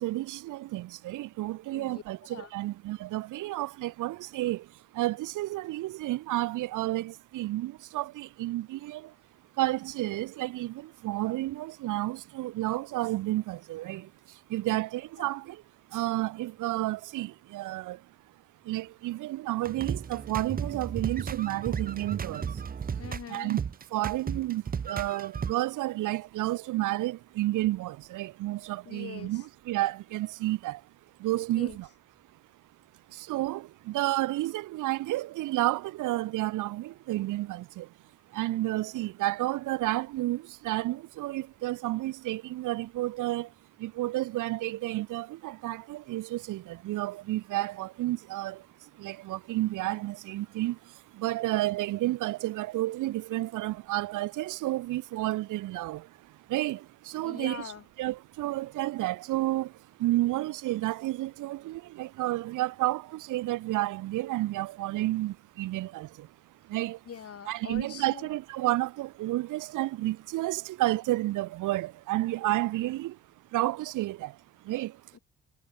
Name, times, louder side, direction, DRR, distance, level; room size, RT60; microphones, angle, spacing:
voice 1, 0.0-9.1 9.6-15.6 15.9-18.1 18.6-22.6 23.3-23.6 23.9-30.9 31.2-31.9 33.1-37.9 38.3-57.6 58.0-66.3 66.6-67.0 67.5-73.2 73.5-75.0, right 17 dB, 85° right, 1.4 m, -31 dB
voice 2, 1.7-2.0 2.3-2.5 14.7-14.8 15.2-15.3 23.0-23.6 28.9-29.4 31.5-31.8 57.2-57.8 67.1-68.3 75.1-75.2, left 7 dB, 50° left, 5.6 m, -43 dB
sound 1, 19.6-25.5, right 6 dB, 30° right, 0.7 m, -34 dB
cardioid pair, 90°, 30 cm